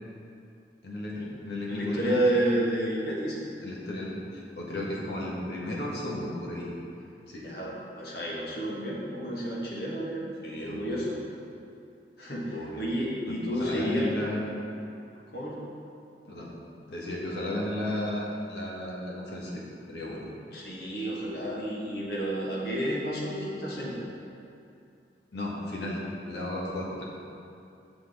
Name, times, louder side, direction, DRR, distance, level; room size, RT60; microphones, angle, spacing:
voice 1, 0.8-2.1 3.6-6.7 7.3-7.4 10.4-11.1 12.5-12.8 13.3-14.5 16.3-16.5 16.9-19.6 19.9-20.2 20.9-21.1 25.3-27.1, left 1 dB, 80° left, -4 dB, 1.4 m, -34 dB
voice 2, 1.7-3.4 7.4-10.3 10.6-11.2 12.2-14.1 15.3-15.7 20.5-24.0, right 1 dB, 60° left, -5 dB, 1.4 m, -30 dB
7.8 x 6.0 x 3.6 m, 2.6 s
head